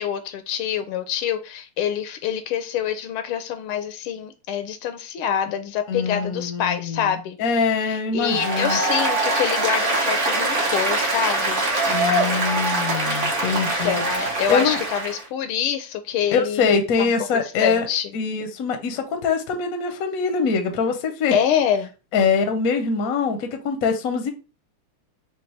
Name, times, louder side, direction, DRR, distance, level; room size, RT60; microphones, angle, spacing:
voice 1, 0.0-7.4 7.8-11.6 13.5-18.1 21.3-21.9, left 9 dB, 80° left, 8 dB, 1.5 m, -26 dB
voice 2, 5.9-7.1 7.4-8.8 11.9-14.0 14.5-14.8 16.3-17.9 18.1-21.4 22.1-24.3, left 5 dB, 60° left, 5 dB, 0.9 m, -23 dB
Applause, 8.2-15.2, right 2 dB, 45° right, 1.1 m, -23 dB
5.2 x 2.5 x 3.2 m, 0.32 s
omnidirectional pair, 2.4 m